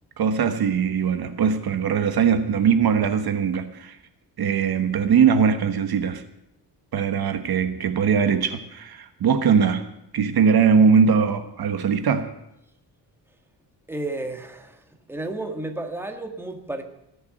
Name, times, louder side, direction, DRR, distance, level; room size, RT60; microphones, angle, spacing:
voice 1, 0.2-4.0 4.4-6.2 6.9-9.8 10.1-12.3, right 6 dB, 60° right, 1.3 m, -21 dB
voice 2, 13.9-14.8 15.1-16.8, right 2 dB, 5° right, 1.6 m, -32 dB
18.0 x 7.1 x 8.7 m
cardioid pair, 135°, 43 cm